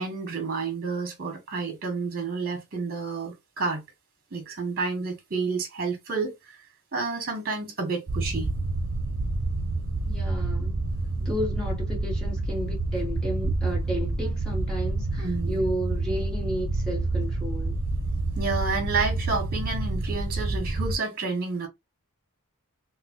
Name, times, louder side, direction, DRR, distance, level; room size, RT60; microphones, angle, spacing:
voice 1, 0.0-3.8 4.3-6.6 6.9-8.5 15.2-15.6 18.4-21.7, right 4 dB, 45° right, 1.3 m, -30 dB
sound 1, 8.1-21.0, right 2 dB, 65° right, 0.6 m, -28 dB
voice 2, 10.1-10.8 11.2-17.8, equal, 5° left, 1.2 m, -33 dB
3.7 x 2.1 x 2.8 m
head